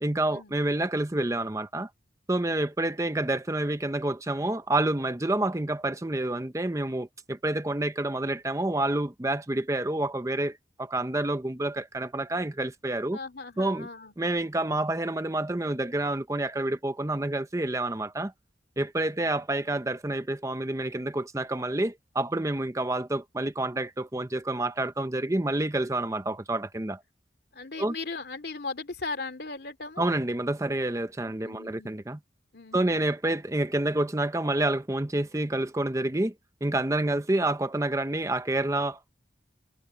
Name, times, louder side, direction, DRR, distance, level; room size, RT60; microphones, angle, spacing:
voice 1, 0.0-1.9 2.3-13.2 13.6-13.9 14.2-18.3 18.8-27.0 27.8-27.9 30.0-32.2 32.7-36.3 36.6-39.2, right 2 dB, 15° right, 0.7 m, -28 dB
voice 2, 13.1-14.1 27.5-30.1 31.4-31.9 32.5-33.1, left 3 dB, 65° left, 2.5 m, -38 dB
head